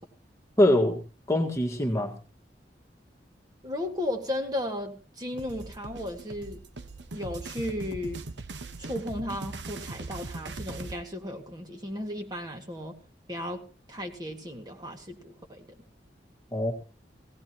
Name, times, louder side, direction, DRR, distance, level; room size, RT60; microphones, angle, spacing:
voice 1, 0.6-1.0 1.3-2.1 16.5-16.7, left 1 dB, 15° left, 1.7 m, -23 dB
voice 2, 3.6-6.6 7.1-8.2 8.8-13.0 13.3-15.8, left 1 dB, 25° right, 1.8 m, -35 dB
sound 1, 5.4-11.0, right 3 dB, 85° right, 1.2 m, -40 dB
17.5 x 17.5 x 2.9 m
head